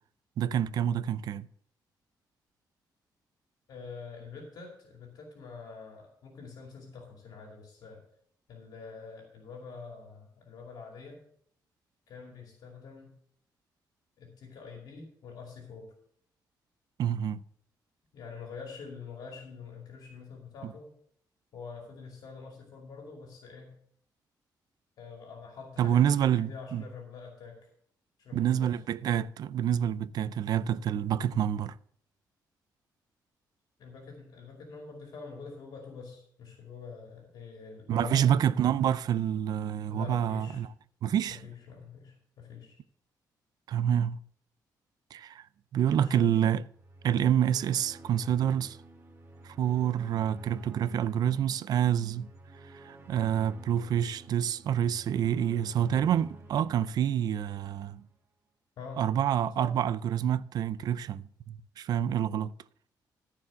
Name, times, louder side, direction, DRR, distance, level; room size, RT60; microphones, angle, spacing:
voice 1, 0.4-1.5 17.0-17.4 20.6-20.7 25.8-26.8 28.3-31.8 37.9-40.7 41.0-41.4 43.7-44.2 45.1-45.5 45.7-46.6 47.0-48.8 49.4-52.3 52.7-58.0 59.0-62.5, right 9 dB, 60° right, 0.4 m, -27 dB
voice 2, 3.7-8.0 8.5-11.2 12.1-13.2 14.2-15.9 18.1-20.9 21.5-23.7 25.0-27.7 28.2-28.7 33.8-38.4 39.9-40.6 41.3-42.7 46.0-46.4 58.8-59.1 59.6-59.7, left 5 dB, 65° left, 2.5 m, -45 dB
sound 1, 46.7-58.0, right 2 dB, 30° right, 1.3 m, -51 dB
14.0 x 4.8 x 6.3 m
wide cardioid pair, 170°, 8 cm